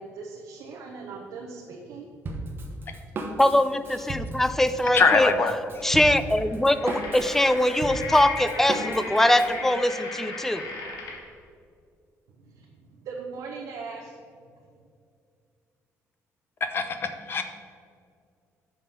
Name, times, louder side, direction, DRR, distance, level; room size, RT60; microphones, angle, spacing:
voice 1, 0.0-2.1 2.4-2.5 12.3-14.2, right 4 dB, 75° right, -1 dB, 0.7 m, -40 dB
Drum kit, 2.3-9.6, right 2 dB, 40° right, 0.9 m, -35 dB
voice 2, 3.4-5.3 5.8-10.6, left 1 dB, 5° left, 12 dB, 0.3 m, -22 dB
voice 3, 4.9-5.5 16.7-17.4, left 5 dB, 40° left, 8 dB, 0.7 m, -22 dB
sound 1, 6.4-11.3, left 3 dB, 90° left, 1.3 m, -36 dB
5.8 x 5.7 x 5.1 m, 2.3 s
cardioid pair, 130°, 6 cm